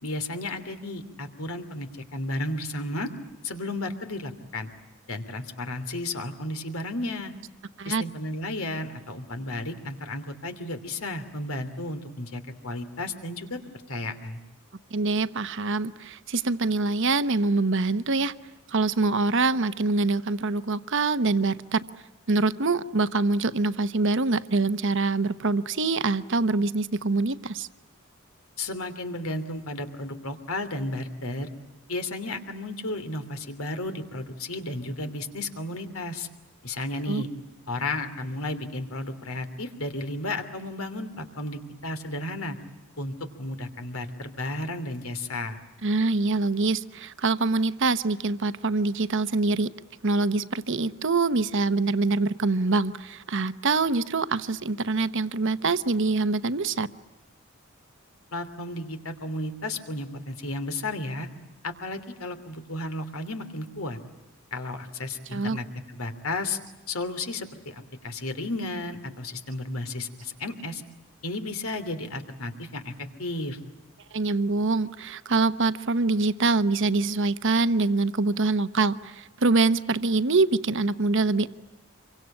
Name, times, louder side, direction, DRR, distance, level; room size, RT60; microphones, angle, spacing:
voice 1, 0.0-3.1 3.4-4.7 5.1-7.3 7.8-13.6 13.9-14.4 28.6-31.5 31.9-36.3 36.6-37.3 37.7-42.6 43.0-45.6 58.3-61.3 61.6-64.0 64.5-65.6 65.9-66.6 66.9-70.8 71.2-72.9 73.2-73.6, left 2 dB, 80° left, 9 dB, 2.9 m, -33 dB
voice 2, 14.9-18.3 18.7-21.8 22.3-27.7 37.1-37.2 45.8-49.7 50.0-56.9 65.3-65.6 74.1-81.5, right 3 dB, 60° right, 12 dB, 1.0 m, -24 dB
27.0 x 24.0 x 8.9 m, 1.1 s
head